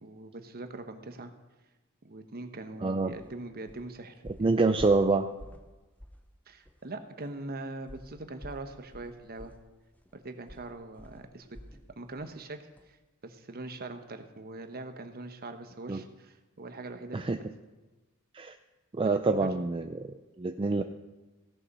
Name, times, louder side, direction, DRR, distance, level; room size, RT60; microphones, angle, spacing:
voice 1, 0.0-1.3 2.0-4.8 6.5-9.5 10.1-11.6 12.0-13.0 13.2-17.5 19.0-19.5, right 2 dB, 45° right, 7 dB, 1.0 m, -42 dB
voice 2, 2.8-3.1 4.4-5.3 15.9-16.0 17.1-17.4 18.3-18.5 18.9-20.8, right 3 dB, 25° right, 7 dB, 0.4 m, -26 dB
sound 1, 3.1-3.3 3.7-3.9 4.3-5.7 6.0-6.3 6.6-6.8 7.9-11.9 12.2-12.4 12.8-12.9, equal, 5° left, 0.8 m, -49 dB
16.5 x 6.9 x 5.4 m, 1.1 s
head